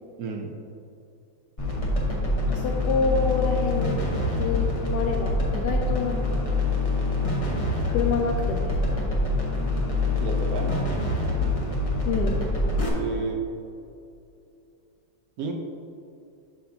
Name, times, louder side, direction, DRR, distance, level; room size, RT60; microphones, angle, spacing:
voice 1, 0.2-0.5 10.2-10.9 12.9-13.4 15.4-15.5, right 4 dB, 70° right, 2 dB, 0.8 m, -31 dB
sound 1, 1.6-12.9, left 2 dB, 25° left, 0.8 m, -25 dB
voice 2, 2.5-4.1 4.4-6.4 7.9-9.0 12.0-12.4, left 4 dB, 75° left, 1 dB, 1.0 m, -28 dB
12.0 x 4.2 x 2.7 m, 2.7 s
omnidirectional pair, 2.2 m